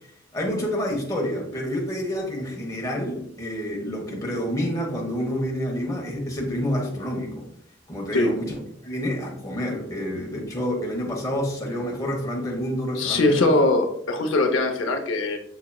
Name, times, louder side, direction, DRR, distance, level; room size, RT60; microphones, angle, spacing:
voice 1, 0.3-7.5 7.9-8.6 8.8-13.5, equal, 20° left, -1 dB, 1.1 m, -28 dB
voice 2, 12.9-15.4, left 2 dB, 90° left, 4 dB, 0.6 m, -21 dB
6.9 x 3.0 x 2.3 m, 0.69 s
head